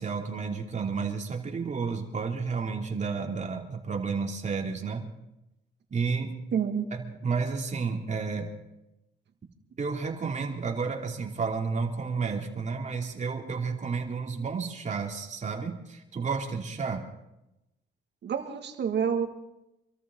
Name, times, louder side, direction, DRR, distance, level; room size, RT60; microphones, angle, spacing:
voice 1, 0.0-5.1 5.9-6.4 6.9-8.5 9.8-17.1, right 5 dB, 35° right, 2 dB, 2.9 m, -31 dB
voice 2, 6.5-6.9 18.2-19.3, right 7 dB, 60° right, 5 dB, 2.1 m, -28 dB
26.5 x 13.5 x 3.9 m, 0.91 s
cardioid pair, 90°, 20 cm